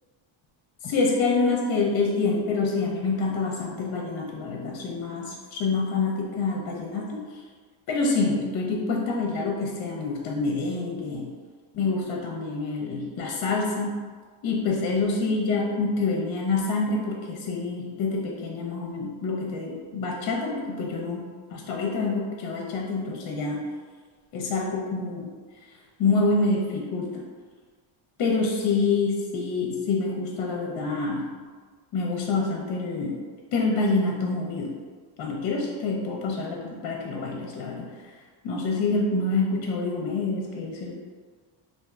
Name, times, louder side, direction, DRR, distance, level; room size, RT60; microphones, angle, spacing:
voice 1, 0.8-7.2 7.9-11.3 11.7-14.0 14.4-21.2 21.5-23.6 24.3-25.3 26.0-27.2 28.2-31.3 31.9-33.2 33.5-34.8 35.2-37.9 38.4-40.9, left 3 dB, 50° left, -1 dB, 0.6 m, -27 dB
3.3 x 2.5 x 2.4 m, 1.5 s
cardioid pair, 100°, 49 cm